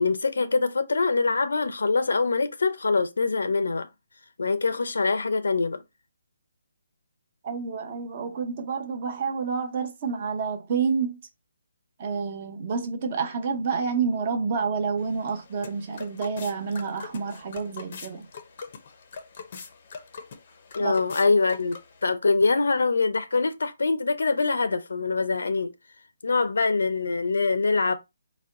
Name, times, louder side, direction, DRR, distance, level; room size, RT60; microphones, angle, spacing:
voice 1, 0.0-3.9 4.4-5.8 20.7-21.8 22.0-25.7 26.2-27.9, left 4 dB, 90° left, 0.6 m, -24 dB
voice 2, 7.4-11.2 12.0-18.3 20.8-20.9, right 5 dB, 30° right, 0.7 m, -29 dB
sound 1, 15.0-22.1, left 5 dB, 40° left, 0.6 m, -43 dB
4.1 x 2.2 x 3.7 m
hypercardioid pair, 170°, 0 cm